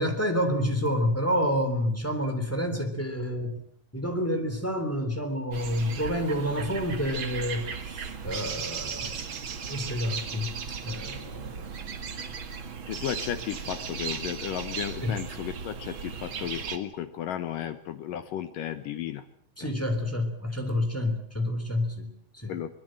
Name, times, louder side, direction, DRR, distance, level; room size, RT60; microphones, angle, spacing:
voice 1, 0.0-3.6 3.9-9.2 9.7-11.7 15.0-15.2 19.6-22.5, equal, 5° left, 6 dB, 2.4 m, -29 dB
sound 1, 5.5-16.8, right 6 dB, 70° right, 1.1 m, -36 dB
voice 2, 12.9-19.3 22.5-22.7, left 10 dB, 75° left, 10 dB, 2.0 m, -34 dB
24.0 x 21.0 x 7.7 m, 0.64 s
omnidirectional pair, 5.4 m